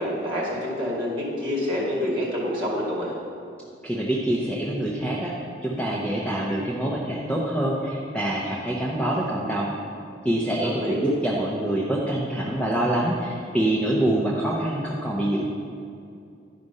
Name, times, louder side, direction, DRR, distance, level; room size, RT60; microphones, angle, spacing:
voice 1, 0.0-3.1 10.6-10.9, left 1 dB, 25° right, -5 dB, 2.2 m, -27 dB
voice 2, 3.8-5.3 5.6-9.7 10.2-15.4, right 1 dB, 5° left, -5 dB, 0.8 m, -25 dB
11.0 x 5.1 x 5.4 m, 2.5 s
head